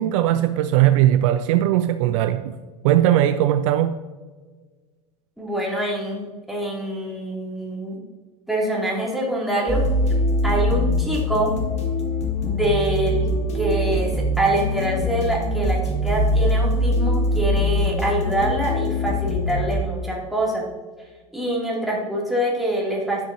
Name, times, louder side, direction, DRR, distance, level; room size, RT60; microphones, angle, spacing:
voice 1, 0.0-2.6 2.8-3.9, right 12 dB, 55° right, 0.4 m, -19 dB
voice 2, 5.4-8.0 8.5-9.8 10.4-11.5 12.4-14.1 14.4-20.6 21.3-23.2, right 1 dB, ahead, 2.7 m, -25 dB
sound 1, 9.7-19.8, left 1 dB, 35° left, 1.6 m, -22 dB
11.5 x 6.2 x 2.8 m
figure-of-eight pair, 80°, 20 cm